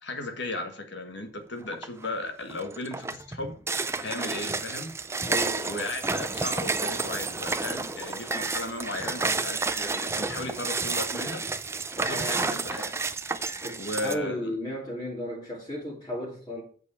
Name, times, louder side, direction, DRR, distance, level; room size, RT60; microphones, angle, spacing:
voice 1, 0.0-3.5 4.0-4.9 5.6-11.4 12.0-12.9 13.8-14.5, left 2 dB, 60° left, 1.6 m, -35 dB
sound 1, 1.7-2.1 2.5-14.1, right 3 dB, 15° right, 0.4 m, -30 dB
voice 2, 5.2-5.8 12.0-12.5 13.6-16.6, left 1 dB, 20° left, 2.7 m, -34 dB
8.4 x 4.8 x 6.9 m
head